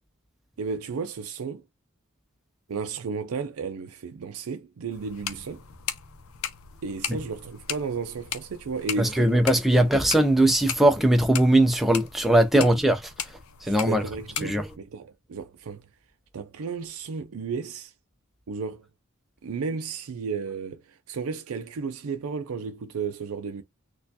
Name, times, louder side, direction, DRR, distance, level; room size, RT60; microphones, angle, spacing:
voice 1, 0.6-1.6 2.7-5.6 6.8-9.4 9.7-9.9 12.6-12.7 13.6-15.9 16.3-17.9 18.5-18.9 19.4-23.6, right 5 dB, 75° right, 0.4 m, -33 dB
sound 1, 4.9-14.8, left 8 dB, 70° left, 0.6 m, -38 dB
voice 2, 9.0-13.0 13.6-14.0 14.4-14.7, right 1 dB, ahead, 0.4 m, -20 dB
4.3 x 2.3 x 2.7 m
head